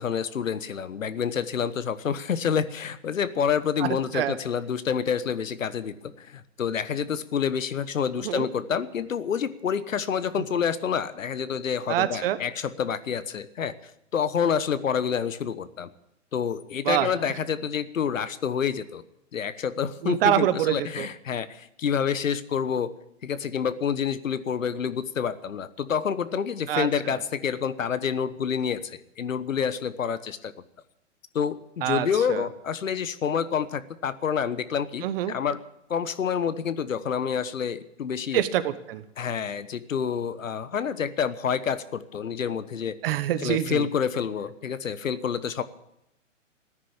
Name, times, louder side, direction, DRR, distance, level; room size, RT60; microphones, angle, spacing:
voice 1, 0.0-15.9 16.3-19.0 19.3-22.9 23.2-30.5 31.3-35.6 35.9-38.4 39.2-43.0 43.4-45.6, left 7 dB, 90° left, 14 dB, 1.2 m, -28 dB
voice 2, 11.9-12.4 16.8-17.1 20.0-21.1 26.7-27.2 31.8-32.5 35.0-35.4 38.3-39.0 43.0-43.9, right 12 dB, 45° right, 12 dB, 1.2 m, -26 dB
14.5 x 10.0 x 8.9 m, 0.84 s
hypercardioid pair, 135°, 38 cm